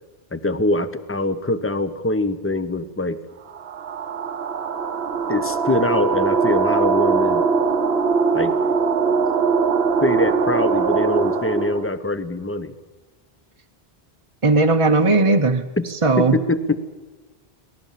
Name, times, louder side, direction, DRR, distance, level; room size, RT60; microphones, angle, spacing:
voice 1, 0.3-3.2 5.3-7.5 8.3-8.6 10.0-12.7 15.8-15.9 16.2-16.8, left 2 dB, 15° left, 12 dB, 0.9 m, -23 dB
sound 1, 3.5-11.9, right 5 dB, 85° right, 1.2 m, -21 dB
voice 2, 14.4-15.6 16.0-16.4, right 3 dB, 35° right, 4 dB, 0.8 m, -17 dB
25.5 x 19.0 x 7.5 m, 1.3 s
omnidirectional pair, 1.0 m